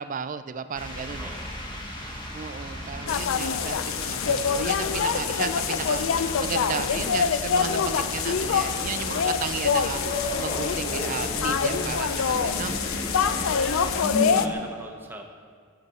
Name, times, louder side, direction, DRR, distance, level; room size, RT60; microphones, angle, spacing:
voice 1, 0.0-1.3 2.3-12.7, right 6 dB, 40° right, 12 dB, 0.3 m, -34 dB
sound 1, 0.7-14.0, equal, 25° left, 1.0 m, -37 dB
voice 2, 1.2-1.5 13.3-14.0 14.2-15.2, right 1 dB, 10° right, 2 dB, 0.7 m, -42 dB
sound 2, 3.1-14.5, left 6 dB, 80° left, 0.4 m, -26 dB
sound 3, 4.8-6.2 6.6-6.7 7.8-14.5, left 1 dB, 50° left, 1.2 m, -35 dB
15.0 x 6.0 x 4.1 m, 2.1 s
head